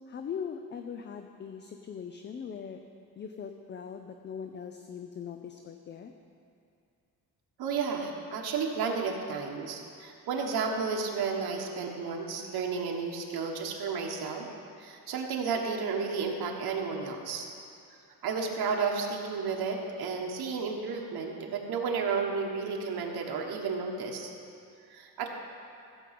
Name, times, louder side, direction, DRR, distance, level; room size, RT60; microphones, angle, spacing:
voice 1, 0.0-2.8 3.2-6.1, left 7 dB, 30° left, 6 dB, 0.4 m, -40 dB
voice 2, 7.6-14.5 14.8-17.5 18.2-24.3 24.9-25.3, right 5 dB, 85° right, 0 dB, 1.5 m, -32 dB
15.5 x 5.4 x 7.6 m, 2.5 s
wide cardioid pair, 175°, 37 cm